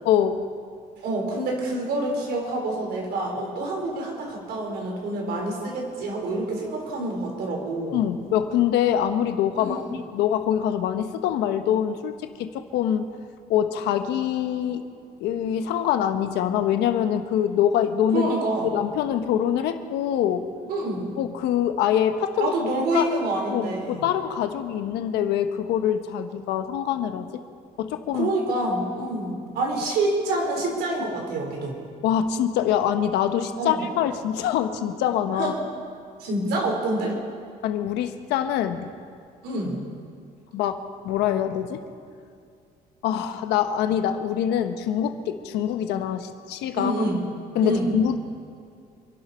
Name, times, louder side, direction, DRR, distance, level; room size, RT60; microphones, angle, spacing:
voice 1, 0.0-0.5 7.9-13.2 13.5-14.8 15.2-18.3 18.6-20.5 21.2-22.5 22.9-23.1 23.5-27.2 27.8-28.3 32.0-35.5 37.6-38.9 40.5-41.8 43.0-46.9 47.5-48.2, left 9 dB, 90° left, 8 dB, 1.2 m, -24 dB
voice 2, 1.0-8.0 9.6-9.9 18.1-18.7 20.7-21.1 22.4-24.0 28.1-31.8 33.6-33.8 35.4-35.6 36.2-37.1 39.4-39.8 46.7-47.2 47.6-47.9, right 2 dB, 75° right, 0 dB, 4.6 m, -27 dB
27.5 x 11.5 x 4.4 m, 2.3 s
cardioid pair, 110°, 17 cm